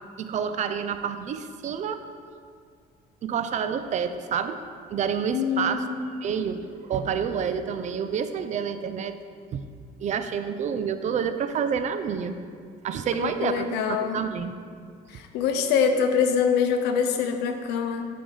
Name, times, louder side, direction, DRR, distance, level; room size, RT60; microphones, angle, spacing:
voice 1, 0.2-2.0 3.2-4.6 4.9-5.8 6.2-9.2 9.5-9.6 10.0-12.4 12.8-14.6, right 7 dB, 45° right, 9 dB, 0.4 m, -28 dB
voice 2, 5.3-6.0 13.2-14.2 15.1-18.1, left 6 dB, 90° left, 6 dB, 0.6 m, -24 dB
7.0 x 3.4 x 5.4 m, 2.1 s
cardioid pair, 110°, 17 cm